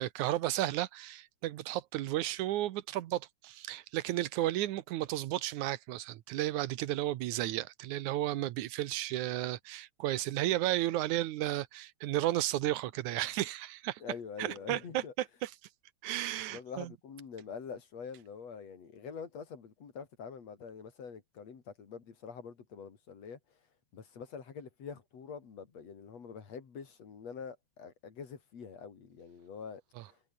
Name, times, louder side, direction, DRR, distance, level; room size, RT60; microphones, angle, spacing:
voice 1, 0.0-14.0 14.4-15.5 16.0-16.9 30.0-30.1, right 14 dB, 85° right, 2.3 m, -33 dB
voice 2, 14.0-15.1 16.5-23.4 23.9-30.2, left 6 dB, 60° left, 4.1 m, -45 dB
omnidirectional pair, 3.4 m